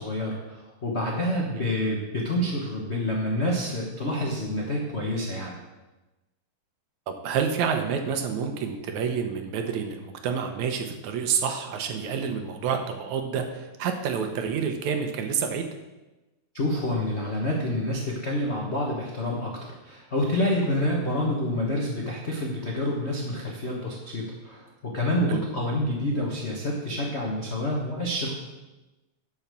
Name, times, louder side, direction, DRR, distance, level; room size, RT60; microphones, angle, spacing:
voice 1, 0.0-5.6 16.5-28.4, left 1 dB, 75° left, -2 dB, 0.6 m, -28 dB
voice 2, 7.1-15.6 25.3-25.4, right 6 dB, 70° right, 5 dB, 2.1 m, -28 dB
11.0 x 5.7 x 6.9 m, 1.1 s
omnidirectional pair, 3.7 m